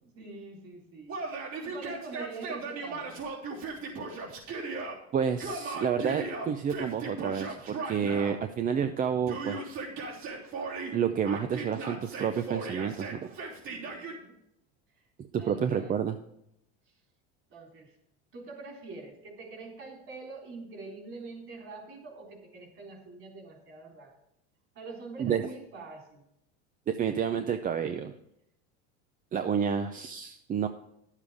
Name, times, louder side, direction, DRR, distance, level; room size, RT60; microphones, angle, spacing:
voice 1, 0.0-1.2 1.6-3.2 13.7-14.4 15.4-15.9 17.5-17.9 18.3-24.1 24.8-26.2, right 3 dB, 40° right, 0 dB, 3.6 m, -45 dB
Yell, 1.1-4.9 5.4-8.4 9.3-11.0 11.3-14.2, right 3 dB, 55° right, 3.5 m, -37 dB
voice 2, 5.1-9.7 10.9-13.3 15.3-16.2 25.2-25.4 26.9-28.1 29.3-30.7, right 7 dB, 25° right, 8 dB, 0.5 m, -29 dB
10.5 x 7.4 x 4.9 m, 0.78 s
supercardioid pair, 120°, 32 cm